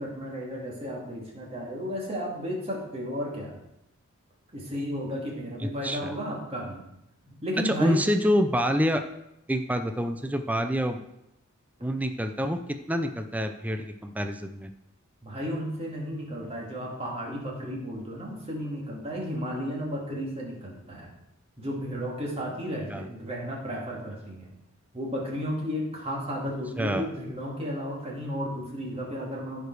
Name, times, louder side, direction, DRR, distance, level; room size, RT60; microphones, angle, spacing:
voice 1, 0.0-3.6 4.5-6.8 7.3-8.0 15.2-21.1 21.6-24.5 24.9-29.7, equal, 30° right, -2 dB, 2.5 m, -33 dB
voice 2, 5.8-6.1 7.6-9.0 9.5-11.0 11.8-12.6 12.9-14.7 22.9-23.1 26.8-27.1, equal, 5° right, 7 dB, 0.5 m, -26 dB
14.5 x 5.0 x 4.7 m, 0.85 s
head